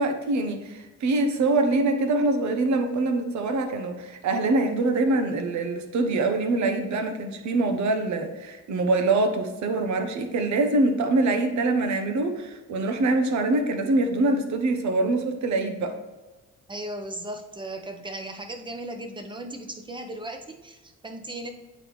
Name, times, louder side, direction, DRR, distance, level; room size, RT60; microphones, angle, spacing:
voice 1, 0.0-16.0, right 2 dB, 70° right, 6 dB, 1.0 m, -24 dB
voice 2, 16.7-21.5, right 1 dB, 15° right, 5 dB, 0.9 m, -36 dB
8.8 x 4.1 x 3.2 m, 1.2 s
cardioid pair, 90°, 30 cm